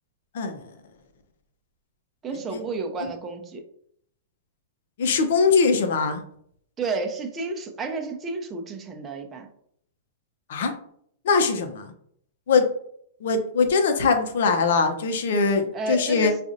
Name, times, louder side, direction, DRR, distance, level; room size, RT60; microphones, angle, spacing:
voice 1, 2.2-3.7 6.8-9.5 15.7-16.4, right 3 dB, 20° right, 3 dB, 0.7 m, -31 dB
voice 2, 5.0-6.2 10.5-10.7 11.2-11.9 12.5-12.7 13.2-16.3, left 4 dB, 65° left, 5 dB, 0.7 m, -21 dB
4.8 x 2.5 x 2.6 m, 0.67 s
hypercardioid pair, 115°, 0 cm